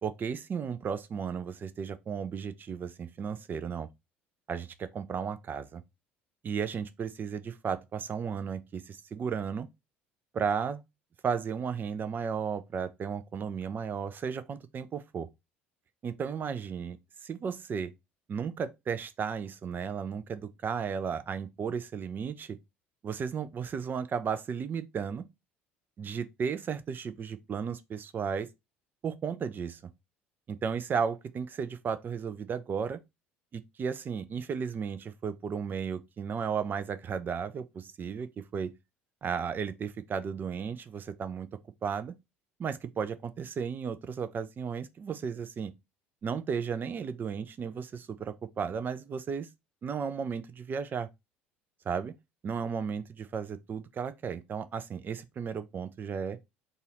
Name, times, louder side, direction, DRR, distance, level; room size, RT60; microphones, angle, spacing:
voice 1, 0.0-3.9 4.5-5.8 6.4-9.7 10.3-10.8 11.2-15.3 16.0-17.9 18.3-22.6 23.0-25.3 26.0-28.5 29.0-29.8 30.5-33.0 33.5-38.7 39.2-41.5 41.8-42.1 42.6-45.7 46.2-49.5 49.8-51.1 51.8-52.1 52.4-56.4, right 6 dB, 30° right, 0.5 m, -34 dB
4.0 x 2.5 x 4.1 m
figure-of-eight pair, 60°, 6 cm